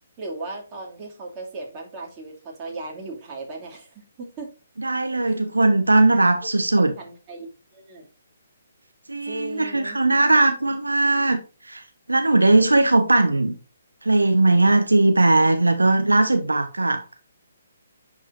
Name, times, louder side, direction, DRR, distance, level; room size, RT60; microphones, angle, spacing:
voice 1, 0.2-4.5 5.3-5.4 6.4-6.5 7.0-8.1 9.2-10.0, right 3 dB, 25° right, 2.5 m, -37 dB
voice 2, 4.8-6.9 9.1-11.4 11.6-11.8 12.1-13.6 14.0-17.0, right 2 dB, 90° right, 1.0 m, -19 dB
10.5 x 4.5 x 2.6 m
figure-of-eight pair, 140°, 0 cm